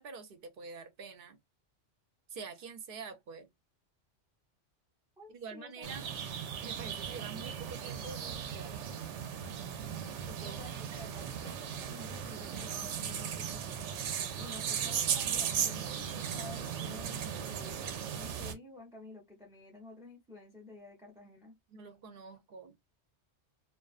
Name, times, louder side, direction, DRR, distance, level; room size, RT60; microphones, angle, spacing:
voice 1, 0.0-1.4 2.3-3.5 5.3-6.1 6.6-8.9 10.2-11.2 21.7-22.7, right 5 dB, 60° right, 0.8 m, -47 dB
voice 2, 5.2-5.9 10.4-13.8 14.4-17.8 18.1-21.6, left 3 dB, 5° right, 0.4 m, -51 dB
sound 1, 5.8-18.5, right 8 dB, 85° right, 0.9 m, -37 dB
2.4 x 2.3 x 2.3 m
omnidirectional pair, 1.2 m